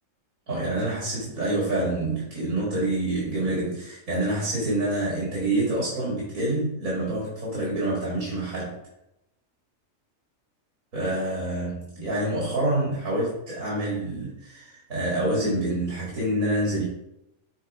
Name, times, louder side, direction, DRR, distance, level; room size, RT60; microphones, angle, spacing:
voice 1, 0.5-8.8 10.9-16.8, right 1 dB, 85° right, -6 dB, 2.5 m, -27 dB
7.2 x 4.0 x 3.6 m, 0.82 s
omnidirectional pair, 1.4 m